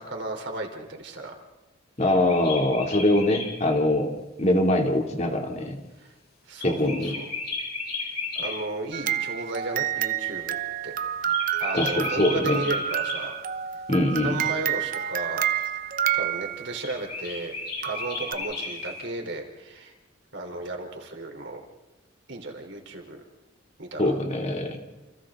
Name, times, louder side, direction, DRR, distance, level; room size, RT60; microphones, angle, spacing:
voice 1, 0.0-1.4 6.0-6.1 6.5-7.3 8.4-10.6 10.8-10.9 11.6-13.4 14.2-15.5 16.1-17.5 17.8-19.9 20.3-21.6 22.3-23.2 23.8-24.2, right 2 dB, 60° right, 3 dB, 3.8 m, -34 dB
sound 1, 2.0-3.5 6.6-8.5 11.3-13.2 16.8-19.0, left 4 dB, 55° left, 6.6 m, -34 dB
voice 2, 2.0-4.1 4.4-5.8 6.6-7.1 11.7-12.6 13.9-14.4 24.0-24.8, left 1 dB, 35° left, 2 dB, 2.8 m, -23 dB
sound 2, 8.9-17.0 17.8-18.3, right 10 dB, 45° right, 0.9 m, -29 dB
29.5 x 28.5 x 3.8 m, 1.1 s
head